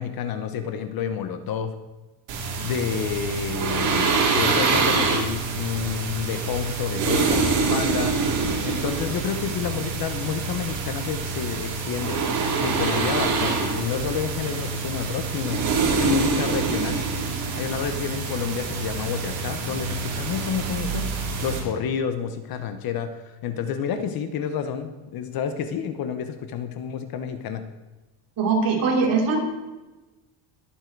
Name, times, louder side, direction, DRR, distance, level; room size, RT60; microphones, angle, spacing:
voice 1, 0.0-1.7 2.6-8.2 8.6-12.2 12.6-17.0 17.5-21.1 21.4-27.6, left 7 dB, 45° left, 9 dB, 1.0 m, -29 dB
sound 1, 2.3-21.6, right 4 dB, 65° right, 4.2 m, -26 dB
voice 2, 28.4-29.4, right 4 dB, 40° right, -1 dB, 3.3 m, -21 dB
21.5 x 7.5 x 4.6 m, 1.1 s
cardioid pair, 175°, 49 cm